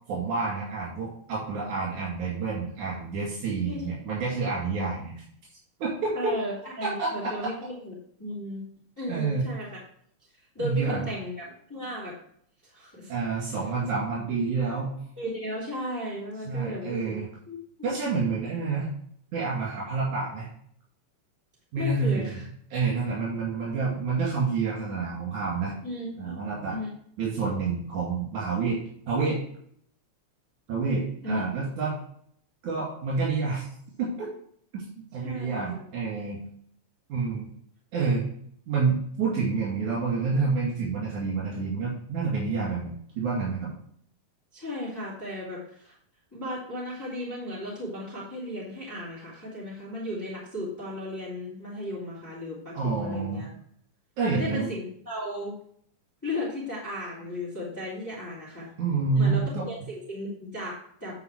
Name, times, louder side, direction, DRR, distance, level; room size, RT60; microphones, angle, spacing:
voice 1, 0.1-5.2 5.8-6.4 6.8-7.1 9.1-9.4 10.6-11.0 13.1-14.9 16.5-17.3 17.8-18.9 19.3-20.5 21.7-22.3 22.7-25.8 26.2-26.8 27.2-28.8 29.1-29.4 30.7-32.0 32.6-33.7 34.0-34.3 34.7-34.9 35.1-36.4 37.1-37.5 37.9-38.2 38.7-43.7 52.7-53.4 54.2-54.7 58.8-59.7, right 4 dB, 80° right, -5 dB, 3.7 m, -28 dB
voice 2, 6.1-7.9 8.2-8.6 9.0-9.8 10.5-12.2 12.6-13.1 15.2-17.2 17.5-17.9 21.8-22.4 25.8-26.4 26.7-26.9 31.2-31.4 35.2-35.8 44.5-45.9 46.3-53.5 54.2-55.5 56.2-58.7 59.1-61.1, left 1 dB, 5° left, -8 dB, 2.9 m, -35 dB
9.6 x 4.8 x 4.5 m, 0.64 s
omnidirectional pair, 3.3 m